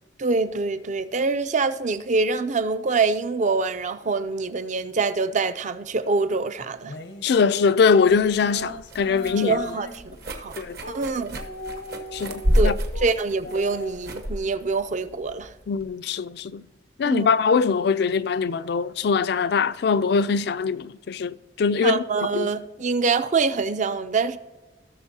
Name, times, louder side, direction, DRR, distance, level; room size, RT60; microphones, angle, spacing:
voice 1, 0.2-6.9 9.4-10.5 10.9-11.4 12.5-15.5 17.0-17.3 21.8-24.4, right 4 dB, 45° right, 0.5 m, -25 dB
sound 1, 6.8-10.1 10.8-11.0 11.3-13.1 13.4-13.9, left 1 dB, 85° left, 0.9 m, -38 dB
voice 2, 7.2-9.6 10.6-10.8 12.1-12.8 15.7-16.7 17.0-22.1 22.3-22.5, left 5 dB, 65° left, 0.4 m, -22 dB
sound 2, 8.1-15.9, equal, 65° right, 1.2 m, -29 dB
17.0 x 6.5 x 2.8 m
head